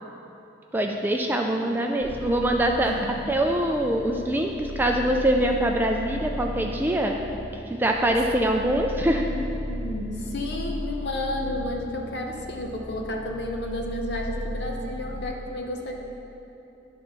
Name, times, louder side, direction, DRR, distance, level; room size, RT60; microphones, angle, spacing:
voice 1, 0.7-7.2 7.7-9.2, right 1 dB, 10° right, 2 dB, 0.3 m, -24 dB
sound 1, 2.0-15.3, equal, 5° left, 1.4 m, -36 dB
voice 2, 9.1-15.9, left 1 dB, 55° left, 1 dB, 0.9 m, -32 dB
10.5 x 4.1 x 6.0 m, 3.0 s
head